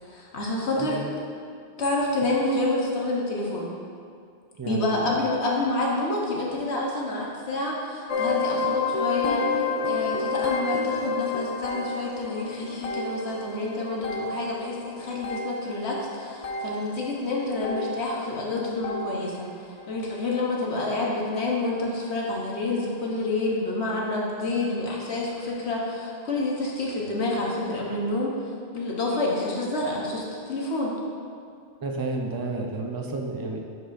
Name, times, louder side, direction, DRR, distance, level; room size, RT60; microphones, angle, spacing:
voice 1, 0.0-1.0 1.8-3.7 4.6-28.3 28.7-31.0, left 2 dB, 75° left, -3 dB, 1.3 m, -28 dB
voice 2, 4.6-5.2 31.8-33.7, right 3 dB, 35° right, 2 dB, 0.4 m, -31 dB
sound 1, 8.1-19.6 19.8-20.3 20.9-21.1 21.4-21.5 22.1-22.2, left 4 dB, 60° left, 0.4 m, -30 dB
11.0 x 4.7 x 2.5 m, 2.3 s
omnidirectional pair, 1.1 m